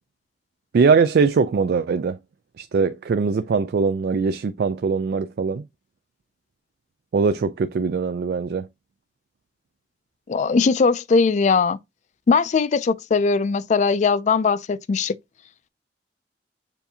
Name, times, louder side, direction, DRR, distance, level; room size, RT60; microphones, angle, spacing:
voice 1, 0.7-2.2 2.6-5.6 7.1-8.7, right 5 dB, 60° right, 0.3 m, -21 dB
voice 2, 10.3-11.8 12.3-15.1, left 4 dB, 40° left, 0.3 m, -20 dB
6.9 x 2.6 x 2.7 m
head